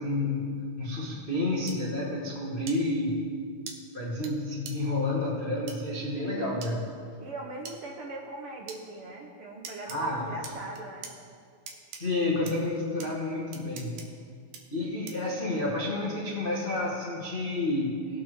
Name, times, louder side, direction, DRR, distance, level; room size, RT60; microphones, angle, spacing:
voice 1, 0.0-3.3 3.9-6.9 9.9-10.3 11.9-14.2 14.7-18.2, left 2 dB, 85° left, -5 dB, 0.4 m, -30 dB
sound 1, 1.7-1.8 2.7-2.8 3.7-3.8 4.2-4.3 4.7-4.8 5.7-5.8 6.6-6.7 7.7-7.8 8.7-8.8 9.6-10.0 10.4-11.1 11.7-12.0 12.5-12.6 13.0-13.1 13.5-14.1 14.5-14.6 15.1-15.3, right 6 dB, 85° right, 2.4 m, -41 dB
voice 2, 7.2-11.1, right 2 dB, 65° right, 0 dB, 1.4 m, -40 dB
18.0 x 8.5 x 3.3 m, 2.3 s
omnidirectional pair, 3.4 m